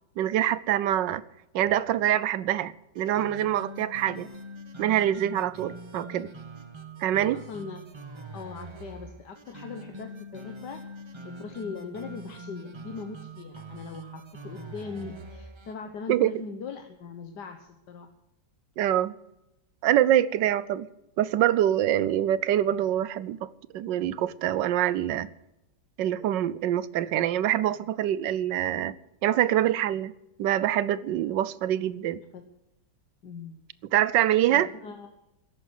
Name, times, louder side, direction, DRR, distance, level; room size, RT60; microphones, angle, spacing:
voice 1, 0.2-1.2 1.5-4.3 4.8-6.3 7.0-7.4 16.1-16.4 18.8-19.1 19.8-20.9 21.2-25.3 26.0-28.9 29.2-30.1 30.4-32.2 33.9-34.7, right 12 dB, 80° right, 1.4 m, -25 dB
sound 1, 3.0-15.8, right 1 dB, 30° right, 0.5 m, -43 dB
voice 2, 7.5-7.8 8.3-10.8 11.2-18.1 32.3-32.4 33.2-33.6 34.5-35.1, left 5 dB, 70° left, 1.8 m, -40 dB
14.0 x 11.0 x 8.1 m
omnidirectional pair, 1.9 m